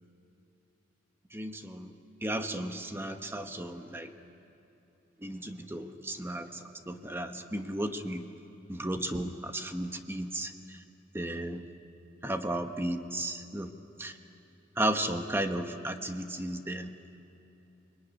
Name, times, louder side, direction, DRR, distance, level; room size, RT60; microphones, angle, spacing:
voice 1, 1.3-1.9 2.2-4.1 5.2-6.5 6.9-8.2 8.7-10.5 11.1-11.6 12.2-13.7 14.0-14.1 14.8-16.9, right 1 dB, 10° right, 7 dB, 1.1 m, -34 dB
27.5 x 21.0 x 9.6 m, 2.9 s
head